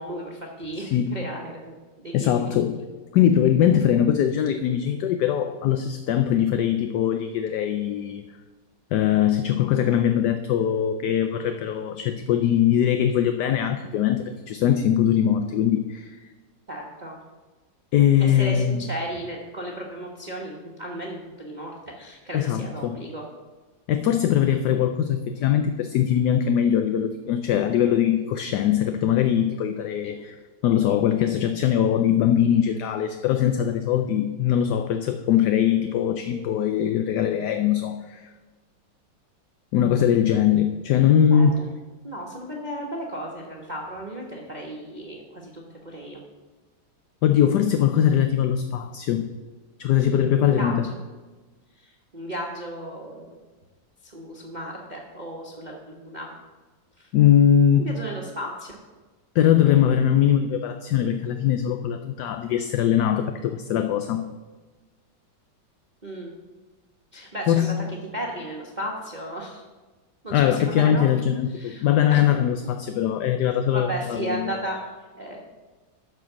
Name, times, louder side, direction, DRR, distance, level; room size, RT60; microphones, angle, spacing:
voice 1, 0.0-2.7 16.7-17.2 18.2-23.3 30.0-30.1 41.2-41.6 42.0-46.2 50.4-51.0 51.7-53.4 54.0-56.3 57.0-57.1 57.8-58.8 66.0-66.3 67.1-69.6 70.2-71.1 71.5-72.3 73.7-74.8 75.1-75.4, right 1 dB, 30° right, -2 dB, 1.1 m, -35 dB
voice 2, 0.8-1.2 2.1-2.8 3.1-8.3 8.9-16.2 17.9-18.8 22.3-23.0 23.9-30.4 30.6-38.3 39.7-41.6 47.2-49.3 49.8-50.8 57.1-58.0 59.3-64.3 67.5-67.8 70.3-74.5, left 9 dB, 70° left, 8 dB, 1.1 m, -21 dB
12.0 x 4.6 x 7.1 m, 1.3 s
omnidirectional pair, 2.0 m